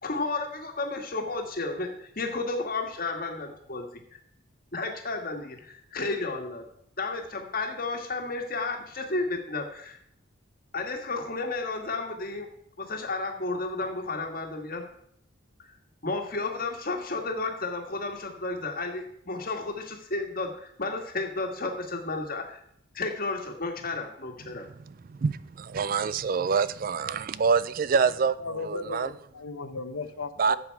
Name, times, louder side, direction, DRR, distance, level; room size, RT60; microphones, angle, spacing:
voice 1, 0.0-3.9 4.7-6.6 7.0-10.0 10.7-12.5 12.8-14.9 16.0-22.6 22.9-24.7, left 3 dB, 45° left, 1.6 m, -32 dB
voice 2, 24.9-29.1 30.4-30.5, right 5 dB, 40° right, 0.3 m, -26 dB
voice 3, 28.4-30.6, left 3 dB, 80° left, 0.8 m, -36 dB
12.5 x 7.8 x 4.6 m
head